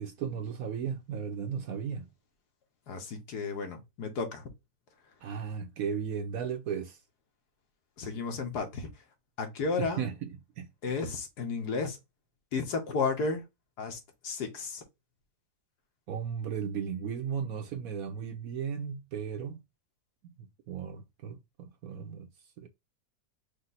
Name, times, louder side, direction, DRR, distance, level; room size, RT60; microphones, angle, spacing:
voice 1, 0.0-2.1 5.2-7.0 9.8-10.7 16.1-19.6 20.4-22.3 22.6-22.7, right 7 dB, 65° right, 1.0 m, -35 dB
voice 2, 2.9-4.5 8.0-8.9 9.4-10.1 10.8-12.0 12.5-13.5 13.8-14.8, left 4 dB, 70° left, 1.7 m, -33 dB
5.1 x 2.2 x 4.0 m
omnidirectional pair, 1.9 m